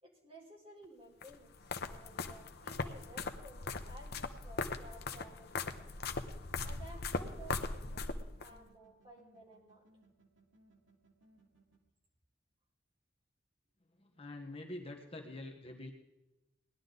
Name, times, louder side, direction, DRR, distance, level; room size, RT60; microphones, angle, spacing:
voice 1, 0.0-5.9 6.6-9.8, right 1 dB, 30° right, -3 dB, 4.1 m, -55 dB
sound 1, 1.2-8.5, left 3 dB, 55° left, 0.9 m, -40 dB
sound 2, 7.0-11.8, right 1 dB, 90° right, 1.9 m, -66 dB
voice 2, 14.0-15.9, left 1 dB, 30° left, 2 dB, 1.4 m, -46 dB
19.0 x 11.0 x 4.0 m, 1.0 s
head